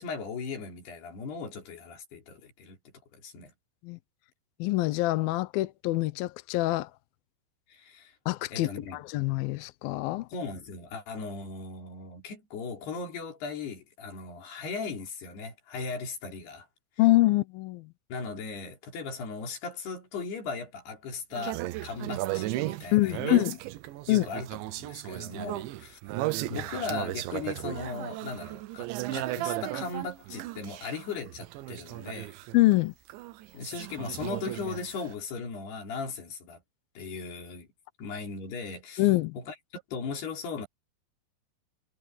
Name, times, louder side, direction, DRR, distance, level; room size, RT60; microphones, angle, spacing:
voice 1, 0.0-2.8 3.1-3.5 7.7-8.1 8.5-9.0 10.3-16.7 18.1-23.4 24.1-26.0 26.5-32.4 33.5-36.6 37.0-37.7 38.0-39.1 39.4-40.7, left 4 dB, 60° left, 6.1 m, -38 dB
voice 2, 4.6-6.9 8.3-10.3 17.0-17.9 22.9-23.6 24.1-24.3 32.5-32.9 39.0-39.4, left 18 dB, 80° left, 2.1 m, -25 dB
sound 1, 21.3-32.8 33.1-35.1, right 16 dB, 90° right, 3.3 m, -35 dB
omnidirectional pair, 5.3 m